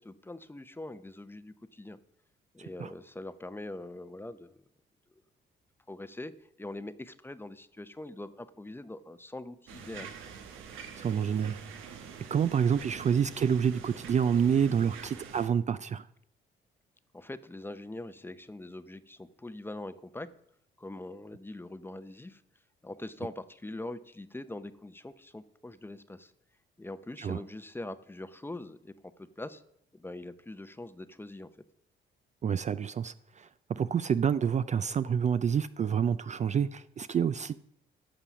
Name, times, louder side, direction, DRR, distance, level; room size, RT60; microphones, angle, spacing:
voice 1, 0.0-2.0 2.5-4.5 5.9-6.3 6.6-10.1 17.1-20.3 20.8-22.4 22.8-26.3 26.8-28.9 29.2-29.6 29.9-31.5, left 2 dB, 10° left, 0.7 m, -43 dB
voice 2, 2.6-2.9 11.0-11.6 12.3-16.0 27.2-27.4 32.4-37.6, right 7 dB, 35° right, 0.4 m, -28 dB
sound 1, 9.7-15.5, right 6 dB, 90° right, 1.3 m, -46 dB
11.5 x 6.8 x 6.1 m
cardioid pair, 90°, 20 cm